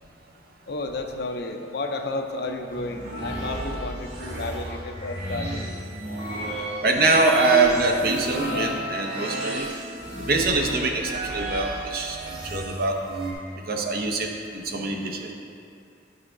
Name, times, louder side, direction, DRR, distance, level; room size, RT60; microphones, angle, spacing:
voice 1, 0.7-5.6, left 2 dB, 65° left, 4 dB, 0.6 m, -32 dB
sound 1, 2.7-13.3, right 1 dB, 70° right, 1.7 m, -33 dB
voice 2, 6.8-9.7 10.2-13.0 13.7-15.3, right 3 dB, 55° right, 2 dB, 0.8 m, -24 dB
10.5 x 5.6 x 3.7 m, 2.5 s
head